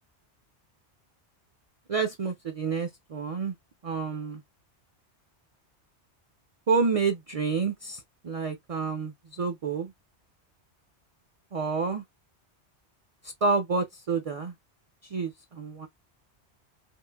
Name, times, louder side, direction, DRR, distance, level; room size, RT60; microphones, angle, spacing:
voice 1, 1.9-3.5 3.8-4.4 6.7-9.1 9.4-9.9 11.5-12.0 13.4-14.5 15.1-15.3 15.6-15.9, right 5 dB, 55° right, 0.4 m, -28 dB
3.7 x 2.5 x 2.2 m
omnidirectional pair, 1.2 m